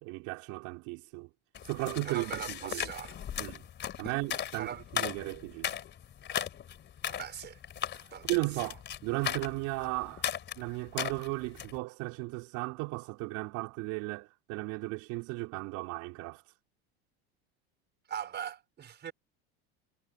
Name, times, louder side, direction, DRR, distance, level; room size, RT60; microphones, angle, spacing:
voice 1, 0.0-1.3 1.7-2.9 3.4-3.6 4.0-5.7 8.2-10.3 10.6-16.4, right 24 dB, 65° right, 4.1 m, -35 dB
sound 1, 1.5-11.8, left 9 dB, 35° left, 3.5 m, -37 dB
voice 2, 2.0-3.2 4.0-4.2 4.6-4.8 7.1-7.6 8.1-8.3 18.1-19.1, right 9 dB, 35° right, 5.5 m, -40 dB
supercardioid pair, 110°, 31 cm